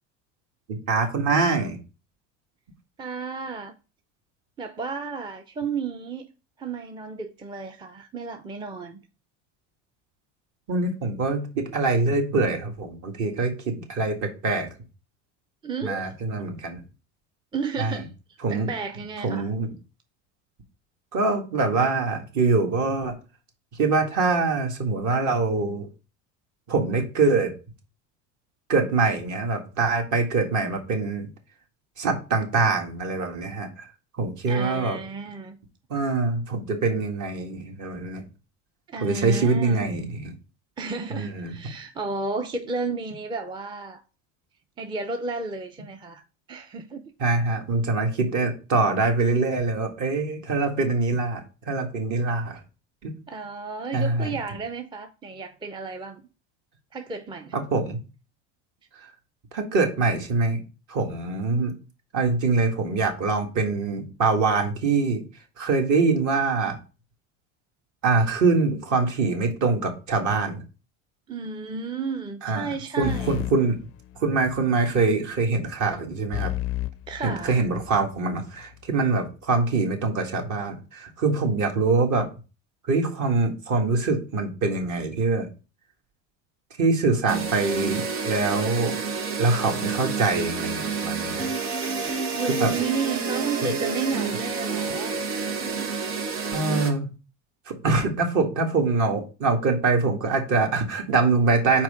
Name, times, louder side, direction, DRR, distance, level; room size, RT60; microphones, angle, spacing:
voice 1, 0.7-1.8 10.7-14.7 15.8-16.8 17.8-18.0 18.4-18.7 19.2-19.7 21.1-23.1 23.8-25.9 26.7-27.5 28.7-31.3 32.0-33.9 34.2-35.0 35.9-38.2 39.0-40.3 41.1-41.5 47.2-52.6 53.0-53.2 53.9-54.3 57.5-58.0 59.5-60.6 60.9-61.7 62.1-65.2 65.6-66.8 68.0-70.6 72.4-72.7 73.0-73.8 74.2-76.5 77.2-82.3 82.9-85.5 86.8-89.0 89.4-91.5 92.6-92.7 93.6-93.7 96.5-97.1 97.7-101.8, right 3 dB, 50° right, 1.8 m, -24 dB
voice 2, 3.0-3.7 4.6-6.3 6.6-9.0 15.6-16.1 17.5-19.5 34.5-35.6 38.9-39.8 40.8-44.0 44.8-46.2 46.5-47.1 53.3-56.2 56.9-57.6 71.3-73.4 77.1-77.7 92.3-95.9, right 4 dB, 15° right, 0.5 m, -32 dB
sound 1, 73.0-74.6 76.3-78.1, left 14 dB, 40° left, 0.4 m, -33 dB
sound 2, 87.3-96.9, right 5 dB, 90° right, 1.5 m, -29 dB
4.7 x 4.4 x 4.9 m
supercardioid pair, 105°, 38 cm